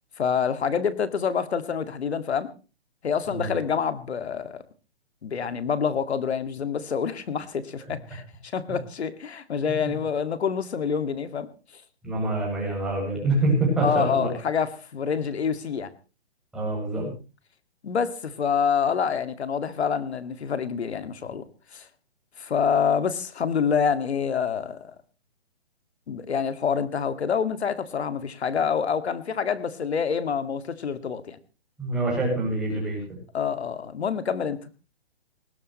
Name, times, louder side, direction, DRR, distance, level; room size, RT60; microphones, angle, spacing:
voice 1, 0.2-2.5 3.0-4.6 5.2-11.5 13.8-15.9 17.8-21.5 21.7-21.9 22.4-24.9 26.1-31.4 33.3-34.6, left 6 dB, 75° left, 12 dB, 2.2 m, -27 dB
voice 2, 12.0-14.3 16.5-17.1 31.8-33.0, right 2 dB, ahead, -4 dB, 7.9 m, -25 dB
19.5 x 17.5 x 3.2 m, 0.33 s
hypercardioid pair, 160°, 33 cm